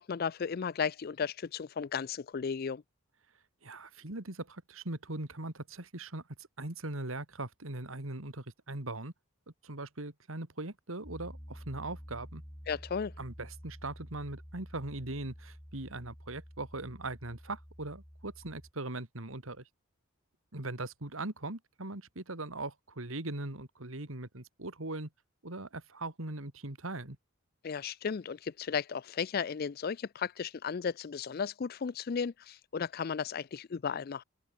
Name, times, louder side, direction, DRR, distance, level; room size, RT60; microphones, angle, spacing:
voice 1, 0.0-2.8 12.7-13.1 27.6-34.2, left 6 dB, 45° left, 0.4 m, -35 dB
voice 2, 3.6-9.1 9.6-12.4 13.2-19.6 20.5-25.1 25.4-27.2, right 2 dB, 75° right, 2.6 m, -40 dB
Piano, 11.0-18.7, equal, 5° left, 3.1 m, -50 dB
open air
head